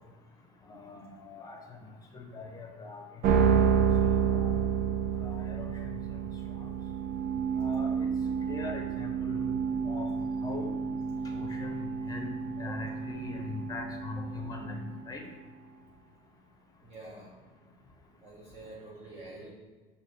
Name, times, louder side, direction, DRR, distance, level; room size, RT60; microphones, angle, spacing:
voice 1, 0.7-1.6 2.1-3.0 3.5-3.6 4.3-4.6 5.2-6.0 7.6-8.1 8.5-9.5 9.9-10.1 10.4-10.7 11.3-12.3 12.6-15.2, left 3 dB, 20° left, 3 dB, 0.7 m, -41 dB
sound 1, 3.2-15.5, right 7 dB, 55° right, 0.5 m, -30 dB
voice 2, 16.8-17.4 18.2-19.5, right 2 dB, 35° right, -6 dB, 1.1 m, -47 dB
5.5 x 2.8 x 3.2 m, 1.4 s
supercardioid pair, 115°, 17 cm